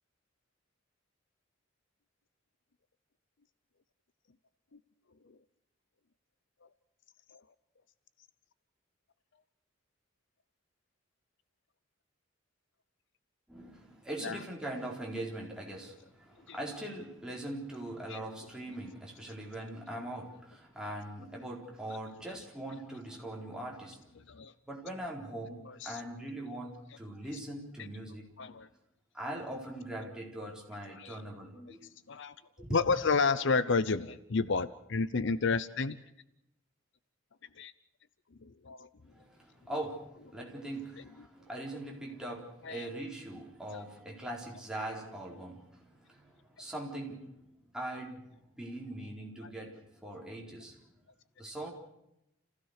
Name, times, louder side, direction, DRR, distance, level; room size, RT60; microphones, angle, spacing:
voice 1, 13.5-24.0 24.7-28.3 29.1-31.9 32.6-32.8 39.1-47.3 47.7-50.8 51.4-51.7, right 1 dB, 5° right, 4.2 m, -41 dB
voice 2, 25.7-26.0 28.4-28.7 30.9-31.2 31.7-31.8 32.1-32.3 32.7-36.0 37.6-37.7 38.4-38.9 42.6-42.9 49.4-49.5, left 4 dB, 60° left, 0.7 m, -31 dB
29.5 x 16.0 x 6.6 m
head